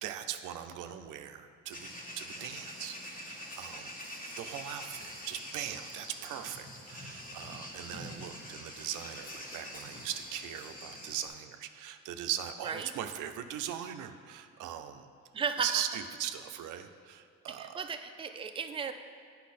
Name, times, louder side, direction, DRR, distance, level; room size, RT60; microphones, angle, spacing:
voice 1, 0.0-3.9 4.4-15.1 15.6-17.8, right 10 dB, 85° right, 8 dB, 0.5 m, -40 dB
sound 1, 1.7-11.3, left 1 dB, 30° left, 1.4 m, -45 dB
voice 2, 15.3-15.8 17.6-18.9, right 6 dB, 20° right, 7 dB, 0.4 m, -35 dB
8.2 x 5.5 x 4.2 m, 2.3 s
cardioid pair, 90°, 30 cm